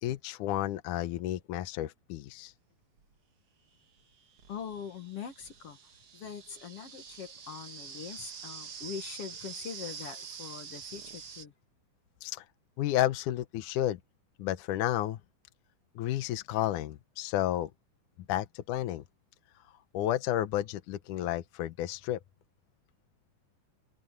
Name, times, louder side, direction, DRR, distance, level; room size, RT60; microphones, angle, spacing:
voice 1, 0.0-2.5 12.2-12.4 12.8-14.0 14.4-15.2 16.0-17.7 18.3-19.0 19.9-22.2, left 13 dB, 70° left, 2.2 m, -31 dB
sound 1, 3.0-3.1 4.0-11.5, right 6 dB, 45° right, 2.4 m, -46 dB
voice 2, 4.5-5.8 6.1-11.5, left 7 dB, 50° left, 2.1 m, -42 dB
omnidirectional pair, 4.0 m